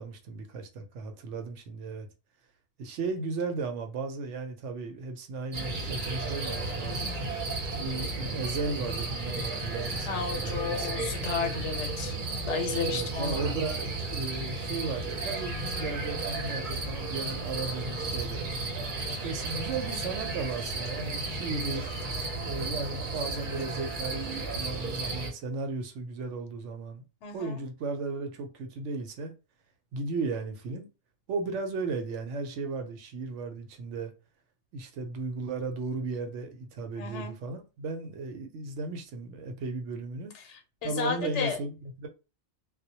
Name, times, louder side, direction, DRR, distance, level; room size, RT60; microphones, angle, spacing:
voice 1, 0.0-2.1 2.8-7.1 7.8-11.2 12.9-18.5 19.1-21.9 22.4-27.0 27.3-29.3 29.9-30.9 31.3-34.1 34.7-40.3 40.8-42.1, right 3 dB, 90° right, 0.9 m, -35 dB
sound 1, 5.5-25.3, right 2 dB, 50° right, 0.7 m, -33 dB
voice 2, 10.1-13.4 27.2-27.6 37.0-37.3 40.3-41.6, left 6 dB, 75° left, 1.0 m, -33 dB
2.2 x 2.1 x 2.7 m
omnidirectional pair, 1.2 m